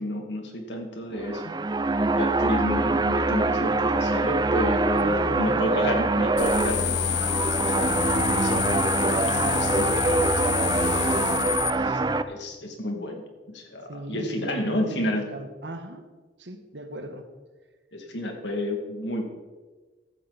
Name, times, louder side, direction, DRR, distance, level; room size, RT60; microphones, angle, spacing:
voice 1, 0.0-1.5 2.2-12.0 12.3-15.3 17.9-19.3, left 1 dB, 85° left, 3 dB, 2.5 m, -31 dB
sound 1, 1.1-12.2, right 3 dB, 25° right, 0.5 m, -24 dB
voice 2, 4.9-5.8 13.9-16.0 16.4-17.3, right 2 dB, 85° right, 7 dB, 1.5 m, -38 dB
sound 2, 6.4-11.7, left 9 dB, 65° left, 0.5 m, -28 dB
15.0 x 12.0 x 4.2 m, 1.3 s
head